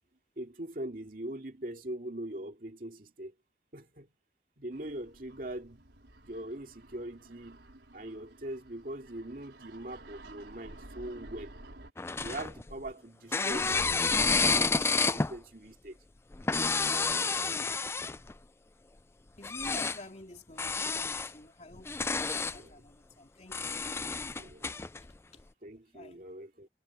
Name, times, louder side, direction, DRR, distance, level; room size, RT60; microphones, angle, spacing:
voice 1, 0.4-3.3 3.7-4.1 4.6-5.9 6.2-11.5 12.2-13.9 14.4-16.0 17.0-17.3 22.5-22.8 24.4-24.7 25.6-26.7, right 1 dB, 50° right, 2.5 m, -42 dB
sound 1, 4.7-11.9, right 1 dB, 80° right, 4.5 m, -52 dB
sound 2, 12.0-12.9 13.3-15.4 16.3-18.3 19.4-20.0 20.6-21.3 21.8-22.6 23.5-25.0, left 4 dB, 15° left, 0.3 m, -30 dB
voice 2, 19.4-24.5 25.0-25.4 25.9-26.3, left 1 dB, 40° left, 3.6 m, -50 dB
head